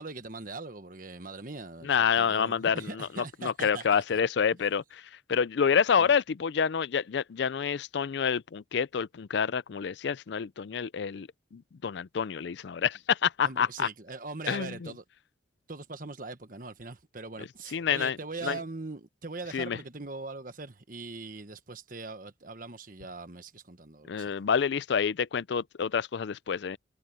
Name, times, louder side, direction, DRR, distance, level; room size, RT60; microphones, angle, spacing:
voice 1, 0.0-4.2 6.0-6.1 13.4-15.0 15.7-24.4, right 3 dB, 45° right, 1.3 m, -41 dB
voice 2, 1.8-3.1 3.4-5.0 5.3-13.9 14.5-14.7 17.7-18.1 18.4-18.6 19.5-19.8 24.1-26.8, left 7 dB, 65° left, 0.4 m, -28 dB
head